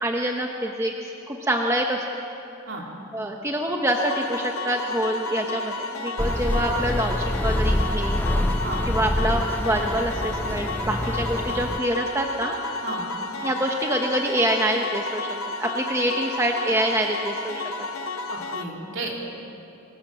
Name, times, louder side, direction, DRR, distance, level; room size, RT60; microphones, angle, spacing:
voice 1, 0.0-2.2 3.1-8.3 8.9-12.5 13.4-15.3 15.6-17.6, right 1 dB, 15° right, 1 dB, 1.0 m, -26 dB
sound 1, 3.9-18.6, left 3 dB, 85° left, 1.2 m, -32 dB
sound 2, 6.2-11.8, left 1 dB, 10° left, 0.4 m, -26 dB
voice 2, 18.3-19.4, right 2 dB, 60° right, -1 dB, 3.5 m, -33 dB
25.0 x 16.5 x 7.6 m, 2.8 s
head